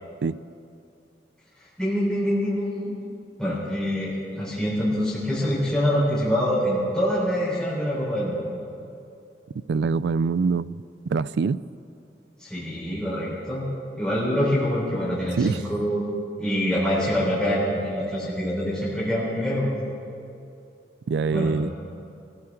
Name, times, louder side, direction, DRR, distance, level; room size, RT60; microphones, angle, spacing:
voice 1, 1.8-3.0 3.4-8.4 12.4-13.6 13.9-16.1 16.4-19.7 21.3-21.5, equal, 5° left, -9 dB, 3.8 m, -25 dB
voice 2, 9.7-10.8 11.1-11.6 15.3-15.7 21.1-21.7, right 5 dB, 75° right, 17 dB, 0.3 m, -24 dB
22.5 x 15.5 x 3.7 m, 2.6 s
head